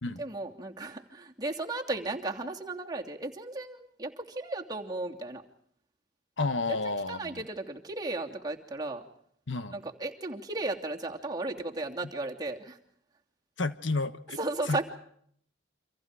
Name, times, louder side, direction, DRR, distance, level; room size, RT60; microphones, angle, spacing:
voice 1, 0.1-5.4 6.7-6.8 7.1-9.0 9.7-12.8 14.4-14.8, right 2 dB, 20° right, 2.9 m, -35 dB
voice 2, 6.4-7.4 9.5-9.7 13.6-14.4 14.7-14.8, left 3 dB, 75° left, 1.4 m, -31 dB
29.5 x 26.0 x 4.9 m
head